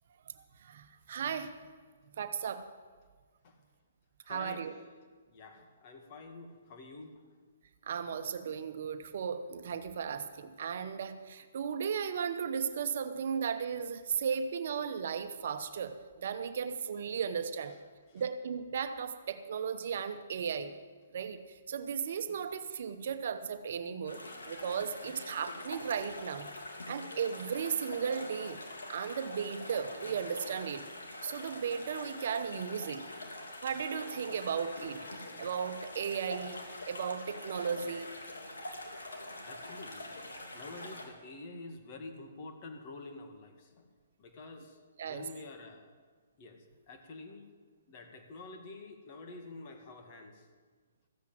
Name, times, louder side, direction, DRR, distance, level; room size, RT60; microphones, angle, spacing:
voice 1, 0.3-1.5 2.2-2.7 4.3-4.7 7.8-17.7 18.1-20.7 21.1-26.5 26.9-28.6 28.9-30.9 31.2-33.1 33.6-35.1 35.4-38.1 45.0-45.2, right 7 dB, 60° right, 10 dB, 1.0 m, -36 dB
voice 2, 4.2-4.6 5.3-7.2 18.1-18.2 22.3-22.4 24.8-25.1 39.4-40.2 40.5-43.8 44.2-45.9 46.4-47.4 47.9-50.5, left 3 dB, 40° left, 4 dB, 2.2 m, -48 dB
sound 1, 24.0-41.0, left 1 dB, 85° left, 2.7 m, -45 dB
14.5 x 8.3 x 7.7 m, 1.5 s
hypercardioid pair, 140°, 0 cm